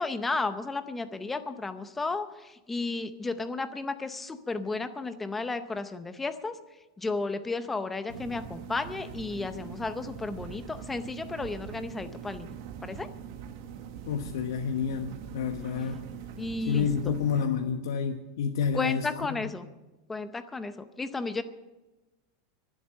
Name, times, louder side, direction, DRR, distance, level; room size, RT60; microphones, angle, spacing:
voice 1, 0.0-6.5 7.0-13.1 16.4-16.9 18.7-19.7 20.1-21.4, left 3 dB, 5° left, 10 dB, 0.6 m, -33 dB
sound 1, 8.1-17.5, right 8 dB, 45° right, 1.1 m, -42 dB
voice 2, 14.1-16.0 16.7-19.4, left 7 dB, 75° left, 4 dB, 1.1 m, -29 dB
24.0 x 8.1 x 6.4 m, 1.1 s
supercardioid pair, 175°, 2 cm